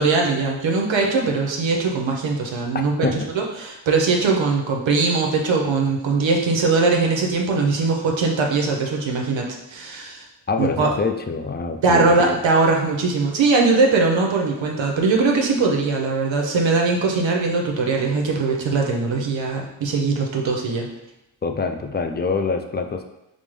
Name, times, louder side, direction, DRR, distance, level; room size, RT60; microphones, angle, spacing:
voice 1, 0.0-3.1 3.3-10.2 10.6-10.9 11.8-20.9, right 3 dB, 75° right, 0 dB, 0.7 m, -20 dB
voice 2, 2.7-3.3 10.5-12.4 21.4-23.0, left 4 dB, 25° left, 6 dB, 0.3 m, -25 dB
5.2 x 2.1 x 3.1 m, 0.88 s
cardioid pair, 65°, 46 cm